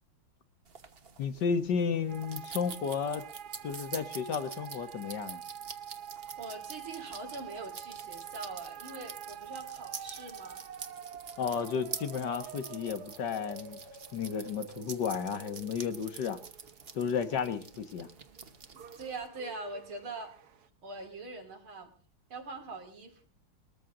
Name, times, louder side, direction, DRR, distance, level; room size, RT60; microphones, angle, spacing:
sound 1, 0.7-19.3, right 5 dB, 35° right, 1.0 m, -47 dB
voice 1, 1.2-3.2 3.6-5.4 11.4-13.8 14.1-16.4 17.0-18.1, left 6 dB, 60° left, 10 dB, 1.8 m, -33 dB
sound 2, 2.1-20.7, right 9 dB, 55° right, 1.5 m, -47 dB
voice 2, 6.4-10.6 18.7-20.3 20.8-21.9 22.3-23.2, right 3 dB, 90° right, 3 dB, 3.9 m, -43 dB
21.0 x 14.0 x 3.8 m, 0.39 s
omnidirectional pair, 2.2 m